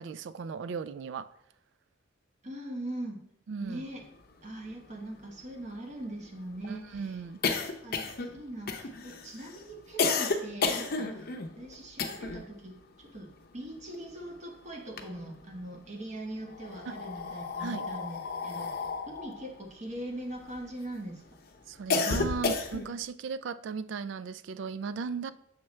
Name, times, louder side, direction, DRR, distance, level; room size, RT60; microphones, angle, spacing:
voice 1, 0.0-1.3 3.5-3.8 6.7-7.4 16.9-17.0 17.6-17.9 21.7-25.3, right 5 dB, 70° right, 0.3 m, -36 dB
voice 2, 2.4-3.2 3.6-4.0 4.4-7.2 7.6-11.3 11.6-18.7 19.0-21.2, right 1 dB, 40° right, 1.2 m, -41 dB
sound 1, 4.3-4.4 4.6-4.7 5.0-12.5 12.8-14.4 14.7-15.7 16.4-20.9 21.3-23.0, left 4 dB, 50° left, 0.6 m, -33 dB
7.3 x 5.7 x 3.2 m
head